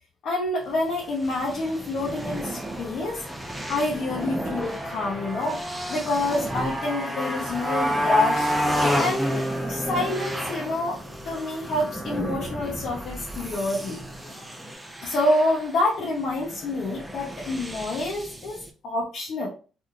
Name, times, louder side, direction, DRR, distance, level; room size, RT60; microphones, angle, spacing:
voice 1, 0.2-3.3 3.7-5.6 5.9-8.5 8.9-11.0 11.2-14.5 15.0-19.5, left 2 dB, 70° left, -3 dB, 0.8 m, -27 dB
sound 1, 0.6-18.7, right 1 dB, 10° right, 0.6 m, -37 dB
Motorcycle, 2.6-14.7, equal, 10° left, 1.0 m, -30 dB
3.0 x 2.6 x 2.4 m, 0.36 s
cardioid pair, 90°, 0 cm